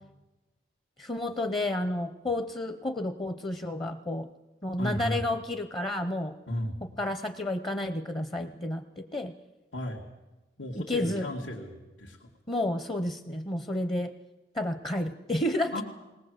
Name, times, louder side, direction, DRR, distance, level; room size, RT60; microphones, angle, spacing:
voice 1, 1.0-4.3 4.6-6.4 7.0-9.3 10.7-11.3 12.5-14.1 14.5-15.8, left 1 dB, 25° left, 8 dB, 0.7 m, -31 dB
voice 2, 4.8-5.2 6.5-6.8 9.7-10.0 10.6-12.3 15.7-15.8, left 1 dB, 90° left, -3 dB, 2.3 m, -34 dB
19.5 x 19.0 x 7.9 m, 1.1 s
head